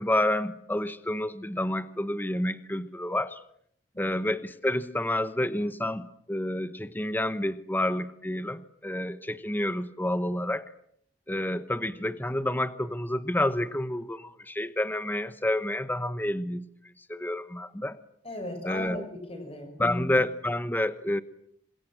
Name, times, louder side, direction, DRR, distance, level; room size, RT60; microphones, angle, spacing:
voice 1, 0.0-3.4 4.0-10.7 11.3-16.7 17.0-18.0 18.6-19.0 19.8-21.2, left 1 dB, 10° left, 12 dB, 1.0 m, -29 dB
voice 2, 18.2-20.1, left 1 dB, 35° left, 6 dB, 6.1 m, -37 dB
28.0 x 26.5 x 7.6 m, 0.70 s
head